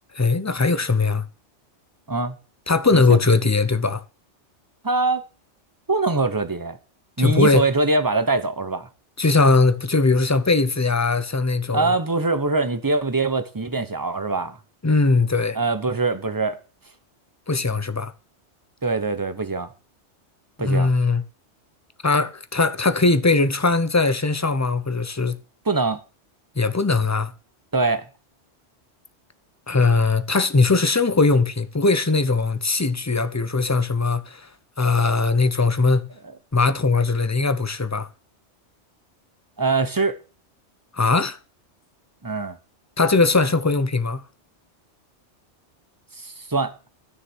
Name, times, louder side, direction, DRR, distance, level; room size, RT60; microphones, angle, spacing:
voice 1, 0.2-1.2 2.7-4.0 7.2-7.6 9.2-11.9 14.8-15.6 17.5-18.1 20.6-21.2 22.0-25.4 26.6-27.3 29.7-34.5 34.8-36.1 36.5-38.1 40.9-41.4 43.0-44.2, left 3 dB, 20° left, 0.6 m, -20 dB
voice 2, 4.8-5.2 5.9-6.8 7.2-8.9 11.7-14.6 15.5-16.6 18.8-19.7 20.6-20.9 25.6-26.0 27.7-28.1 39.6-40.2 42.2-42.6 46.2-46.7, right 3 dB, 20° right, 0.9 m, -23 dB
12.5 x 6.6 x 6.4 m
omnidirectional pair, 1.2 m